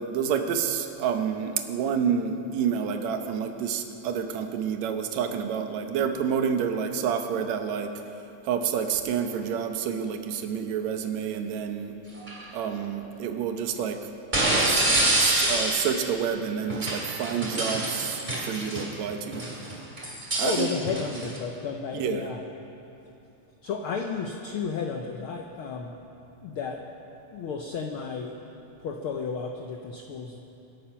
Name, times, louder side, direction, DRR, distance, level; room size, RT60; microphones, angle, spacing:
voice 1, 0.0-7.9 8.4-11.9 12.5-14.0 14.7-18.2 18.5-19.4 20.4-20.7 21.9-22.3, right 7 dB, 75° right, 6 dB, 2.2 m, -29 dB
sound 1, 12.2-12.4 14.3-16.1 16.7-18.9 19.3-21.4, right 1 dB, 15° right, 2.6 m, -26 dB
voice 2, 20.1-22.5 23.6-25.9 26.4-26.8 27.3-28.4 28.8-30.4, left 5 dB, 75° left, 3 dB, 1.2 m, -33 dB
25.5 x 8.4 x 5.7 m, 2.8 s
omnidirectional pair, 3.4 m